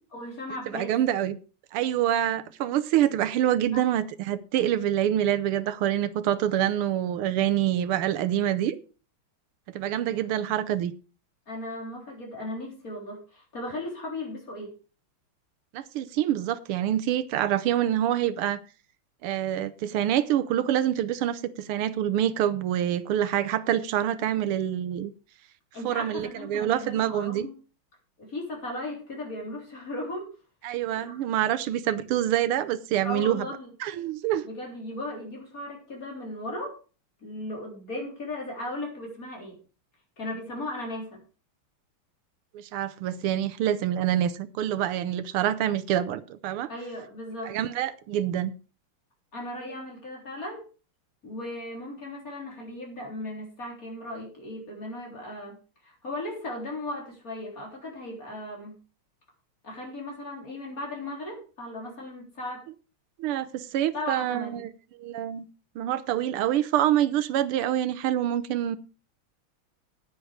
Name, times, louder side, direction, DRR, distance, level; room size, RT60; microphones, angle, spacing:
voice 1, 0.1-0.9 3.7-3.8 11.5-14.7 25.7-27.5 28.2-30.3 30.9-31.2 33.0-33.7 34.4-36.8 37.2-39.6 40.2-41.2 46.7-47.6 49.3-50.7 51.2-55.6 55.8-58.8 59.6-62.7 63.9-64.6, left 1 dB, 40° left, 4.1 m, -37 dB
voice 2, 0.7-1.4 1.7-8.8 9.7-10.9 15.7-18.6 19.2-25.1 25.8-27.5 30.6-33.5 33.8-34.4 42.5-46.7 47.5-48.5 63.2-64.7 65.0-65.4 65.7-68.8, right 11 dB, 85° right, 1.7 m, -26 dB
9.6 x 9.5 x 5.0 m
omnidirectional pair, 2.4 m